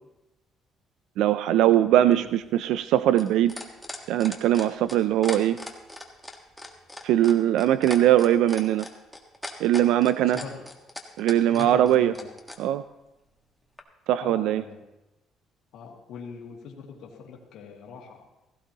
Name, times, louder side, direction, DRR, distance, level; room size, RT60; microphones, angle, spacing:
voice 1, 1.2-3.5 4.1-5.6 7.0-8.9 9.6-10.4 11.2-12.1 12.6-12.8 14.1-14.6, right 12 dB, 85° right, 13 dB, 0.4 m, -21 dB
sound 1, 2.1-12.6 13.8-13.9, left 1 dB, ahead, 1.5 m, -39 dB
voice 2, 10.2-10.6 11.5-12.3 14.2-14.8 15.7-18.2, left 6 dB, 75° left, -2 dB, 2.1 m, -41 dB
16.0 x 15.5 x 2.9 m, 0.98 s
cardioid pair, 135°, 0 cm